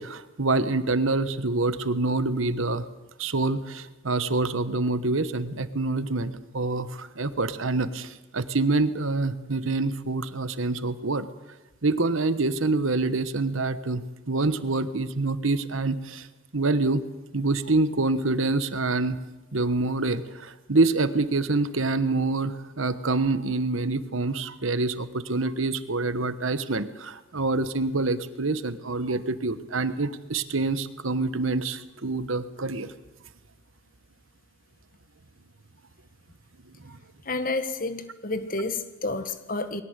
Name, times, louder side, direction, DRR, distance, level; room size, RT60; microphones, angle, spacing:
voice 1, 0.0-2.8 3.2-11.3 11.8-16.3 16.5-17.0 17.3-19.2 19.5-32.9 36.8-37.0, right 3 dB, 80° right, 12 dB, 1.3 m, -26 dB
voice 2, 37.2-39.8, left 3 dB, 40° left, 10 dB, 1.4 m, -30 dB
21.0 x 17.5 x 8.3 m, 1.0 s
head